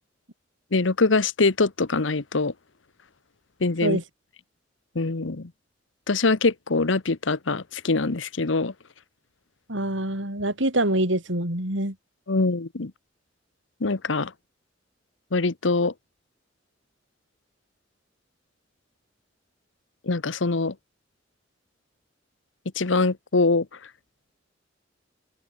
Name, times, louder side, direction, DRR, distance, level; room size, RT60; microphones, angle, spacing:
voice 1, 0.7-2.5 3.6-4.0 4.9-5.5 6.1-8.7 12.3-12.9 13.8-14.3 15.3-15.9 20.1-20.7 22.8-23.7, left 3 dB, 85° left, 1.1 m, -23 dB
voice 2, 9.7-11.9, right 1 dB, 80° right, 6.2 m, -25 dB
head